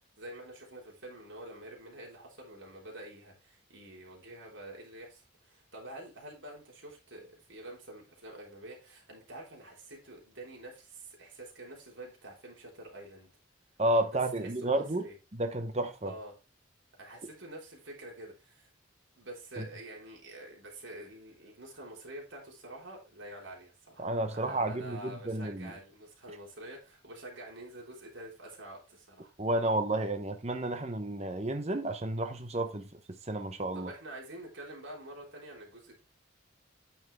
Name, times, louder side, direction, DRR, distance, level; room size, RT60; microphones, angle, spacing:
voice 1, 0.2-13.3 14.1-15.2 16.0-16.3 17.0-18.7 19.2-29.3 33.7-36.0, right 1 dB, 75° right, 3.5 m, -47 dB
voice 2, 13.8-15.0 15.4-16.1 19.6-19.7 24.0-25.7 29.4-32.9 33.3-33.9, right 1 dB, 35° right, 1.0 m, -31 dB
9.4 x 5.8 x 3.3 m
head